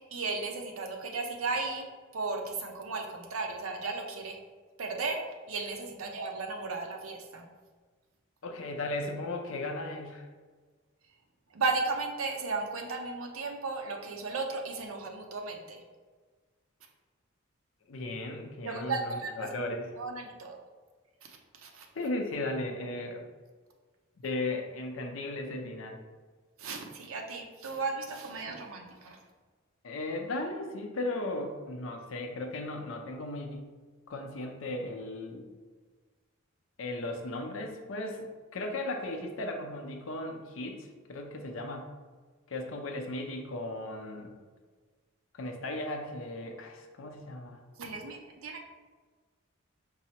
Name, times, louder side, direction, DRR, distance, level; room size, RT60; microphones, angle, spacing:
voice 1, 0.1-1.9 2.1-4.4 4.8-7.5 11.5-15.8 18.6-19.5 20.0-20.6 21.2-21.9 26.6-29.2 47.8-48.6, right 3 dB, 85° right, 3 dB, 0.6 m, -35 dB
voice 2, 8.4-10.3 17.9-19.9 21.9-23.2 24.2-26.0 29.8-33.7 34.1-35.5 36.8-41.9 42.5-44.3 45.3-47.6, left 2 dB, 70° left, 3 dB, 0.6 m, -36 dB
4.7 x 2.0 x 4.2 m, 1.4 s
head